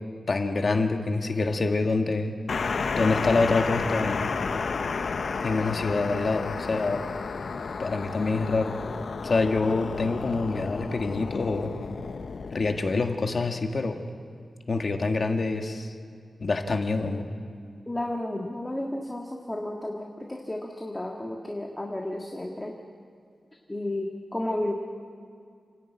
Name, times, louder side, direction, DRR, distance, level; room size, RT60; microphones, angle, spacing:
voice 1, 0.3-2.3 2.9-4.3 5.4-7.0 7.8-8.8 9.2-11.7 12.5-14.1 14.7-15.9 16.4-17.3, left 3 dB, 50° left, 4 dB, 1.7 m, -26 dB
sound 1, 2.5-13.0, left 4 dB, 70° left, 0.8 m, -32 dB
voice 2, 17.9-22.7 23.7-24.7, left 1 dB, 15° left, 0 dB, 1.7 m, -32 dB
29.0 x 10.5 x 9.2 m, 2.3 s
wide cardioid pair, 120°, 0 cm